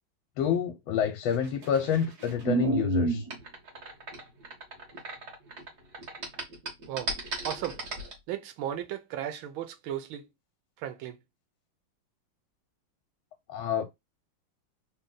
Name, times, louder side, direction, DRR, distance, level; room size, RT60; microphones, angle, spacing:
voice 1, 0.4-3.3 13.5-13.9, left 8 dB, 85° left, 1.4 m, -28 dB
sound 1, 1.3-5.7 5.9-8.1, right 4 dB, 55° right, 1.7 m, -31 dB
voice 2, 7.4-7.8 8.3-10.3 10.8-11.2, right 11 dB, 90° right, 1.5 m, -35 dB
3.9 x 2.2 x 3.8 m
omnidirectional pair, 2.2 m